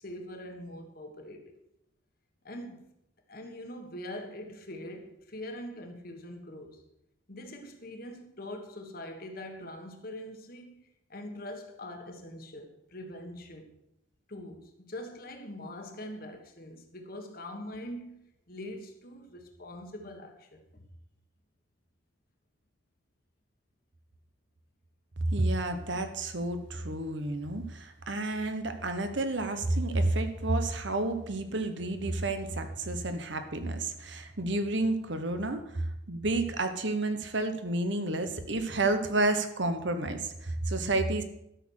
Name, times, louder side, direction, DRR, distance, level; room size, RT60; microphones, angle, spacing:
voice 1, 0.0-1.6 2.4-2.9 3.3-6.8 7.3-10.8 11.1-13.8 14.3-20.9, left 1 dB, 45° left, 1.5 m, -43 dB
voice 2, 25.2-41.2, right 2 dB, 65° right, 1.1 m, -30 dB
12.5 x 6.4 x 6.4 m
head